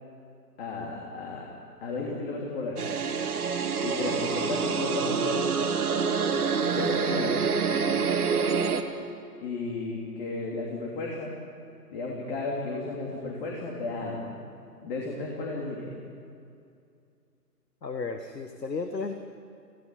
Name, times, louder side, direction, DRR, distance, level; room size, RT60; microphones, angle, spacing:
voice 1, 0.6-1.5 1.8-2.9 3.8-5.4 6.7-7.4 9.4-11.3 11.9-14.4 14.8-15.9, left 3 dB, 35° left, -2 dB, 3.2 m, -33 dB
sound 1, 2.8-8.8, right 5 dB, 60° right, 1.8 m, -27 dB
voice 2, 17.8-19.1, left 4 dB, 85° left, 7 dB, 1.6 m, -33 dB
17.5 x 16.5 x 9.9 m, 2.5 s
figure-of-eight pair, 135°, 49 cm